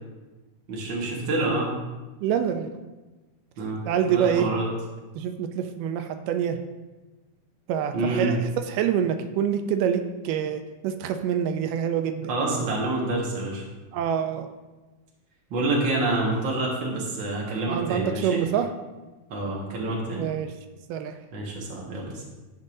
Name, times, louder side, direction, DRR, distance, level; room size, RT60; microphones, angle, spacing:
voice 1, 0.7-1.8 3.6-4.7 7.9-8.3 12.3-13.7 15.5-18.4 19.3-20.3 21.3-22.2, right 2 dB, 45° right, -3 dB, 1.8 m, -27 dB
voice 2, 2.2-2.7 3.9-4.5 5.2-6.6 7.7-8.4 8.7-12.3 13.9-14.5 17.7-18.7 20.2-20.5 20.9-21.2, right 8 dB, 85° right, 7 dB, 2.2 m, -26 dB
13.5 x 5.3 x 2.6 m, 1.2 s
omnidirectional pair, 3.7 m